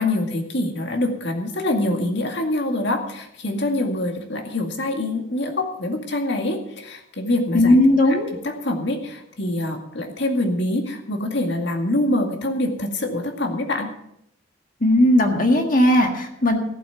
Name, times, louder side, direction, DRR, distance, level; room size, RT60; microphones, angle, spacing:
voice 1, 0.0-7.7 8.0-13.9, left 1 dB, 60° left, 4 dB, 2.1 m, -25 dB
voice 2, 7.5-8.3 14.8-16.6, left 1 dB, 40° left, 3 dB, 1.7 m, -17 dB
14.5 x 8.5 x 7.0 m, 0.77 s
head